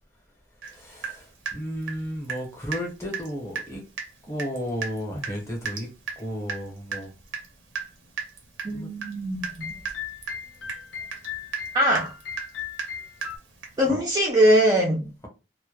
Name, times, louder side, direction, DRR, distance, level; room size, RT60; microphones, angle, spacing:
Water tap faucet / Drip, 0.6-0.8 1.0-2.5 2.7-2.9 3.1-3.3 3.6-3.7 4.0-4.1 4.4-13.9, right 5 dB, 80° right, 0.7 m, -35 dB
voice 1, 0.7-3.8 4.2-5.9 6.2-7.1 8.7-8.9 13.9-14.0, equal, 15° left, 0.7 m, -33 dB
voice 2, 8.6-9.5 11.7-12.1 13.8-15.1, equal, 20° right, 0.4 m, -21 dB
sound 1, 9.6-13.4, left 8 dB, 70° left, 0.5 m, -37 dB
2.1 x 2.1 x 2.9 m
head